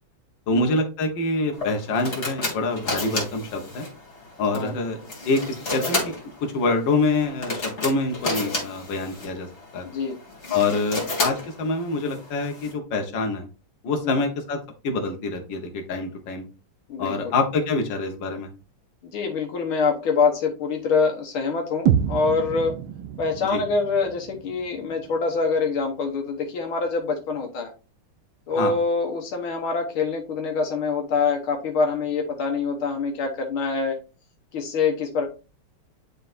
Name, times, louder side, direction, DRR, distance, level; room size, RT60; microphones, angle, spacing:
voice 1, 0.5-3.9 4.4-5.0 5.3-6.1 6.4-9.5 9.7-9.9 10.5-13.4 13.8-14.6 14.8-16.5 17.0-18.5 23.5-23.6 28.6-28.8, left 3 dB, 65° left, 3 dB, 1.9 m, -25 dB
sound 1, 1.5-12.7, left 2 dB, 35° left, 2.6 m, -32 dB
voice 2, 9.8-10.2 14.0-14.2 16.9-17.3 19.1-22.7 23.2-27.7 28.5-34.0 34.5-35.3, left 4 dB, 80° left, 2 dB, 1.9 m, -25 dB
sound 2, 21.9-25.8, right 9 dB, 75° right, 1.4 m, -28 dB
10.5 x 4.0 x 2.6 m, 0.32 s
omnidirectional pair, 2.3 m